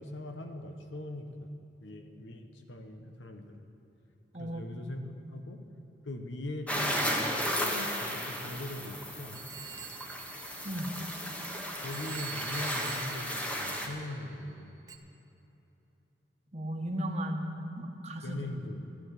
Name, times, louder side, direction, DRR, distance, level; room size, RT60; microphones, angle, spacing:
voice 1, 0.0-1.5 1.8-3.6 4.4-5.6 6.0-9.4 11.8-14.8 18.2-18.8, left 1 dB, 85° left, 5 dB, 1.1 m, -41 dB
voice 2, 4.3-5.4 10.6-10.9 16.5-17.5 17.8-18.5, equal, 35° right, 3 dB, 1.2 m, -36 dB
sound 1, 6.7-13.9, equal, 10° left, 1.2 m, -34 dB
Telephone, 9.3-11.4 11.9-14.2 14.9-15.0, right 9 dB, 20° right, 0.8 m, -46 dB
13.5 x 11.0 x 6.6 m, 3.0 s
head